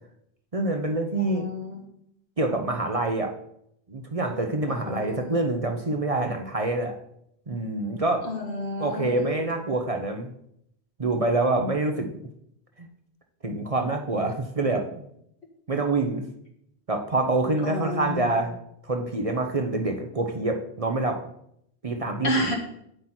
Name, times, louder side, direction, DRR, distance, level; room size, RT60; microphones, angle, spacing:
voice 1, 0.5-1.5 2.4-3.4 3.9-7.0 7.5-8.3 8.8-10.3 11.0-12.3 12.8-12.9 13.4-15.0 15.7-16.3 16.9-18.6 18.8-21.2 21.8-22.5, right 2 dB, 35° right, 4 dB, 0.9 m, -26 dB
voice 2, 1.1-1.8 4.7-5.4 8.2-9.2 17.6-18.5 22.2-22.5, left 2 dB, 80° left, 0 dB, 2.5 m, -31 dB
9.3 x 7.8 x 4.4 m, 0.73 s
omnidirectional pair, 1.1 m